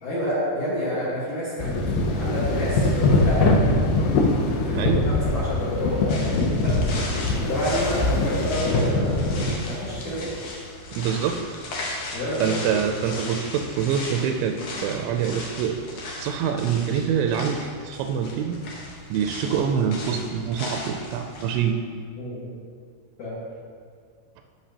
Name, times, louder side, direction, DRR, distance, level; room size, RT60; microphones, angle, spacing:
voice 1, 0.0-3.8 4.5-6.8 7.4-10.3 12.1-12.8 22.2-22.5 23.2-23.4, equal, 55° left, -11 dB, 2.4 m, -28 dB
sound 1, 1.6-10.4, left 2 dB, 90° left, 2.0 m, -23 dB
voice 2, 4.7-5.1 10.9-11.4 12.4-15.8 16.2-18.6 19.1-21.8, right 7 dB, 85° right, 4 dB, 2.8 m, -25 dB
sound 2, 6.1-21.6, left 2 dB, 75° left, 1.8 m, -37 dB
13.0 x 6.0 x 2.8 m, 2.1 s
omnidirectional pair, 5.1 m